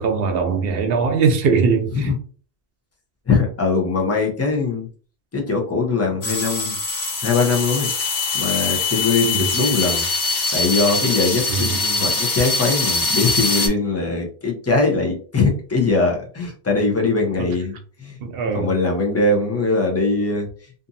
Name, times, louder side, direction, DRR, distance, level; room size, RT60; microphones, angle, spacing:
voice 1, 0.0-2.1 9.3-9.5 11.5-11.8 17.4-17.5 18.2-18.7, right 5 dB, 65° right, 0.8 m, -21 dB
voice 2, 3.3-4.9 5.3-6.8 7.2-7.9 8.3-10.1 10.5-18.2 18.5-20.5, left 3 dB, 20° left, 0.5 m, -21 dB
sound 1, 6.2-13.7, left 3 dB, 70° left, 1.1 m, -23 dB
2.6 x 2.5 x 2.6 m
omnidirectional pair, 1.1 m